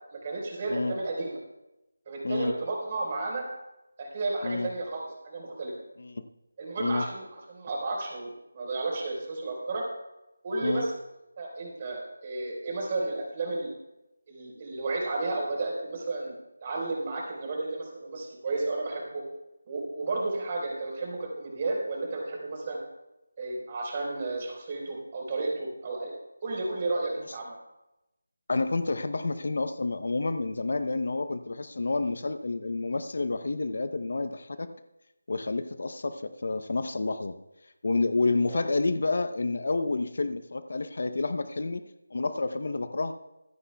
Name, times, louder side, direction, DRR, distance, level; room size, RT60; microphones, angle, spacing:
voice 1, 0.1-1.4 2.1-3.4 4.0-5.7 6.6-9.8 10.4-10.9 11.4-13.7 14.3-16.3 16.6-19.2 19.7-22.8 23.4-26.1 26.4-27.6 38.5-38.6, right 2 dB, 30° right, -1 dB, 4.3 m, -32 dB
voice 2, 28.5-34.7 35.3-37.3 37.8-41.8 42.1-43.1, left 3 dB, 60° left, 10 dB, 0.8 m, -29 dB
24.5 x 10.0 x 2.3 m, 0.95 s
figure-of-eight pair, 170°, 0 cm